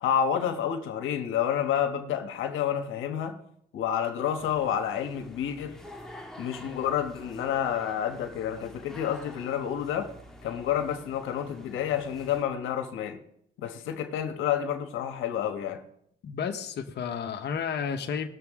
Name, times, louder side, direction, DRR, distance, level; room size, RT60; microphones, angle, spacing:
voice 1, 0.0-3.4 3.7-5.8 6.4-10.1 10.4-13.2 13.6-15.8, left 9 dB, 90° left, 1.2 m, -29 dB
sound 1, 4.4-12.4, left 1 dB, 5° left, 1.7 m, -48 dB
voice 2, 16.2-18.3, left 7 dB, 60° left, 1.1 m, -32 dB
19.0 x 7.0 x 3.7 m
cardioid pair, 90°, 20 cm